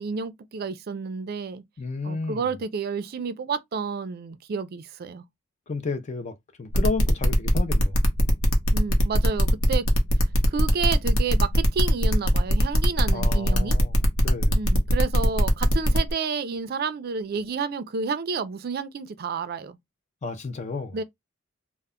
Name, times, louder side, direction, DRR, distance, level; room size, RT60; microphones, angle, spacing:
voice 1, 0.0-1.6 2.0-5.2 8.7-9.9 10.5-13.8 14.5-19.8 20.9-21.0, right 5 dB, 50° right, 0.4 m, -30 dB
voice 2, 1.8-2.5 5.7-8.0 13.1-14.6 20.2-21.0, left 3 dB, 35° left, 0.4 m, -32 dB
sound 1, 6.7-16.1, equal, 85° left, 0.8 m, -22 dB
2.1 x 2.0 x 3.5 m
head